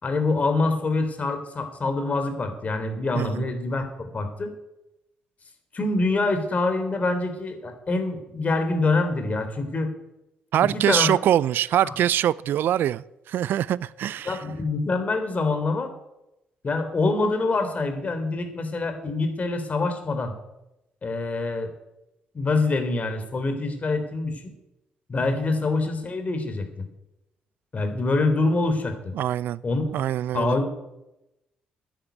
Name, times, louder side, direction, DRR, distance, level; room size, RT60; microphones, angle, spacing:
voice 1, 0.0-4.5 5.7-9.9 10.6-11.1 11.8-11.9 14.2-15.9 16.6-20.3 21.0-21.7 22.3-24.4 25.1-26.7 27.7-29.1 29.6-29.8 30.3-30.7, left 3 dB, 40° left, 3.5 m, -25 dB
voice 2, 3.2-3.5 10.5-14.4 29.2-29.6 29.9-30.6, right 11 dB, 65° right, 0.4 m, -23 dB
10.0 x 10.0 x 9.2 m
hypercardioid pair, 50°, 4 cm